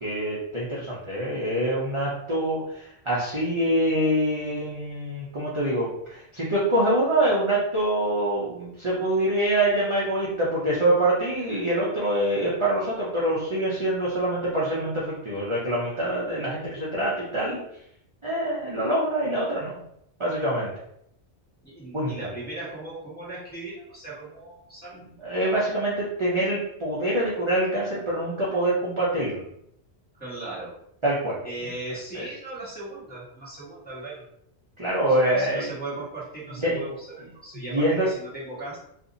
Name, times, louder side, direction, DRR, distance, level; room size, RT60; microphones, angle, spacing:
voice 1, 0.0-17.6 18.2-19.8 20.2-20.7 21.9-22.1 25.2-29.4 31.0-31.4 32.1-32.3 34.8-35.7 36.6-36.8 37.7-38.1, right 1 dB, 30° right, -7 dB, 0.7 m, -25 dB
voice 2, 21.6-25.0 30.2-30.7 31.4-34.2 35.1-38.8, right 2 dB, 10° left, -8 dB, 1.4 m, -37 dB
2.6 x 2.6 x 3.9 m, 0.74 s
omnidirectional pair, 1.1 m